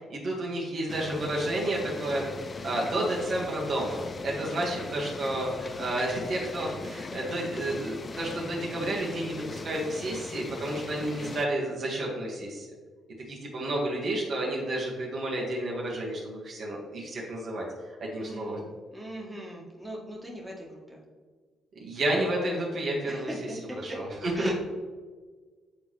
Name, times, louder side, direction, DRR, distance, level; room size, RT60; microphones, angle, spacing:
voice 1, 0.0-2.3 2.6-12.7 13.3-18.6 21.8-23.3 23.8-24.5, right 1 dB, 55° right, -4 dB, 1.9 m, -31 dB
sound 1, 0.9-11.5, left 3 dB, 35° left, 0.5 m, -40 dB
voice 2, 18.2-18.6 18.9-21.0 23.1-24.0 24.4-24.5, right 1 dB, 5° right, -3 dB, 2.0 m, -39 dB
9.5 x 3.9 x 3.3 m, 1.5 s
supercardioid pair, 55°, 0 cm